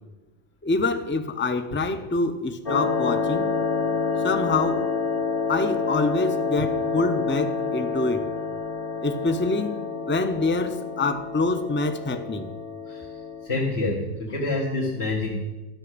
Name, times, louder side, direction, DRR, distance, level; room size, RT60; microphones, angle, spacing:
voice 1, 0.6-3.5 4.2-4.9 5.5-8.3 9.0-9.8 10.1-12.5, left 3 dB, 15° left, 0.5 m, -26 dB
sound 1, 2.7-13.5, left 4 dB, 40° left, 1.0 m, -28 dB
voice 2, 13.4-15.4, left 2 dB, 80° left, 1.8 m, -27 dB
12.5 x 5.8 x 7.7 m
omnidirectional pair, 1.1 m